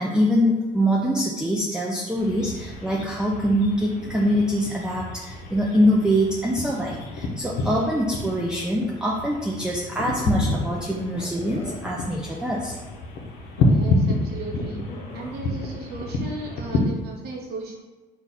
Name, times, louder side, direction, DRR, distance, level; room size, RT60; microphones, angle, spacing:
voice 1, 0.0-12.8, equal, 5° right, -3 dB, 0.4 m, -24 dB
sound 1, 2.2-16.8, left 2 dB, 85° left, 0.6 m, -29 dB
sound 2, 11.2-11.8 12.7-12.8 13.1-13.2 14.7-15.4, left 2 dB, 35° left, 0.7 m, -41 dB
voice 2, 13.6-14.8 15.1-17.7, right 3 dB, 75° right, -1 dB, 1.0 m, -36 dB
4.1 x 2.3 x 3.9 m, 1.2 s
cardioid pair, 110°, 17 cm